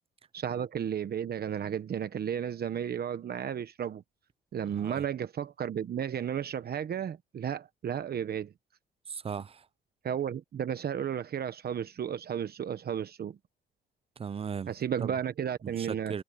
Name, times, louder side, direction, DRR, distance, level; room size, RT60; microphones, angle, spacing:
voice 1, 0.3-4.0 4.5-8.5 10.0-13.4 14.7-16.1, right 9 dB, 50° right, 1.1 m, -33 dB
voice 2, 9.1-9.7 14.2-14.7 15.0-15.1 15.6-16.2, right 6 dB, 30° right, 0.5 m, -37 dB
cardioid pair, 90°, 20 cm